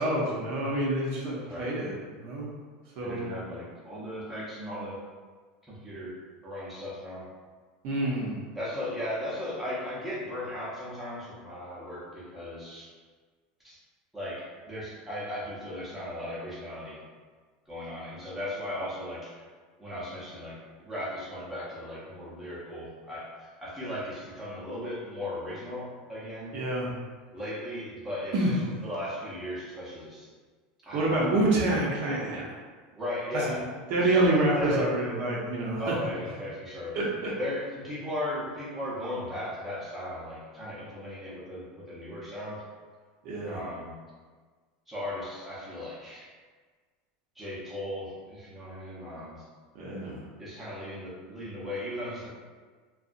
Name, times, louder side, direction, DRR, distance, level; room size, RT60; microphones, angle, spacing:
voice 1, 0.0-2.5 3.0-3.3 7.8-8.3 26.5-26.9 28.3-28.5 30.9-32.5 33.3-33.6 33.9-35.8 36.9-37.3 43.2-43.6 49.7-50.2, right 2 dB, 55° right, -4 dB, 0.6 m, -27 dB
voice 2, 3.0-5.0 5.7-6.2 6.4-7.3 8.5-12.9 13.6-13.8 14.1-17.0 17.7-19.4 19.8-26.6 27.3-30.3 30.8-31.5 33.0-33.6 34.0-34.9 35.8-37.0 37.4-42.6 43.4-44.0 44.9-46.3 47.4-49.5 50.4-52.3, left 1 dB, 5° right, -8 dB, 0.7 m, -37 dB
2.7 x 2.3 x 2.5 m, 1.5 s
supercardioid pair, 135°, 4 cm